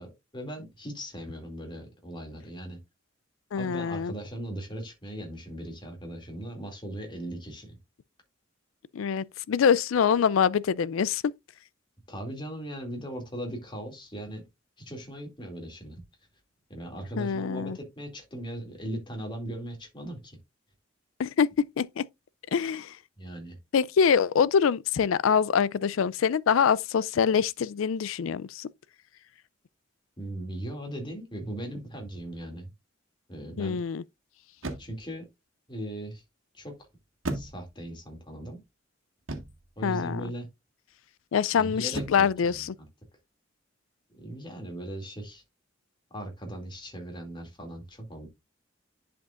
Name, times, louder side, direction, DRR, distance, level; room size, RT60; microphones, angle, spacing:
voice 1, 0.0-2.8 3.6-7.8 12.1-14.4 14.8-16.0 16.7-20.3 23.2-23.6 30.2-32.7 33.3-33.8 34.8-35.3 35.7-36.2 36.5-36.7 37.3-38.6 39.8-40.5 41.6-42.9 44.1-45.4 46.1-48.3, right 1 dB, 25° left, 2.4 m, -38 dB
voice 2, 3.5-4.1 8.9-11.3 17.2-17.8 21.2-21.5 21.8-22.0 22.5-22.9 23.7-28.7 33.6-34.0 39.8-40.3 41.3-42.7, left 7 dB, 85° left, 0.4 m, -25 dB
sound 1, 32.1-32.5 34.6-35.2 37.2-38.0 39.3-39.7 41.9-42.4, right 2 dB, 75° right, 1.7 m, -36 dB
10.5 x 5.2 x 2.4 m
head